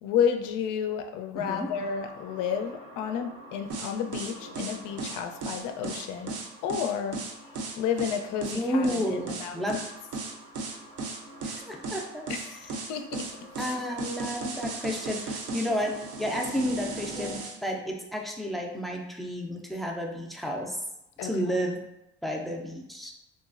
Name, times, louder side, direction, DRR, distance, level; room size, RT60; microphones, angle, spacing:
voice 1, 0.0-7.2 7.8-9.6 12.3-13.4 21.2-21.5, left 8 dB, 80° left, 6 dB, 0.4 m, -31 dB
voice 2, 1.3-1.7 8.5-9.8 11.4-12.3 13.6-20.8 21.2-21.8 22.2-23.1, equal, ahead, 0 dB, 0.4 m, -31 dB
sound 1, 1.5-16.5, equal, 80° right, 1.4 m, -50 dB
sound 2, 3.7-17.6, right 3 dB, 50° right, 0.6 m, -36 dB
2.9 x 2.4 x 2.4 m, 0.90 s
cardioid pair, 100°, 30 cm